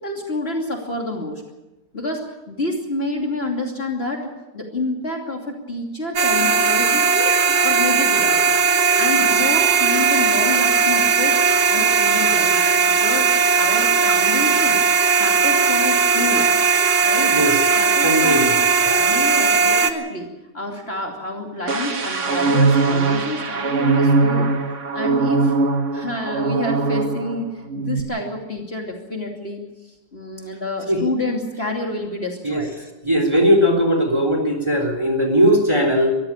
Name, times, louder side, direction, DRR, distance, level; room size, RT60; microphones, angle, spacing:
voice 1, 0.0-1.4 1.9-8.6 9.0-11.4 11.7-16.5 17.0-17.4 17.7-18.5 19.0-24.5 24.9-25.5 25.9-27.5 27.7-32.7, left 2 dB, 35° left, 1 dB, 3.0 m, -28 dB
sound 1, 6.2-19.9, right 5 dB, 65° right, 2.0 m, -17 dB
voice 2, 18.0-19.1 30.9-31.0 32.4-32.6 33.0-36.2, equal, 15° right, 4 dB, 3.7 m, -19 dB
sound 2, 21.7-27.4 27.7-28.0, right 3 dB, 50° right, 1.8 m, -20 dB
22.5 x 14.5 x 8.9 m, 1.0 s
omnidirectional pair, 1.8 m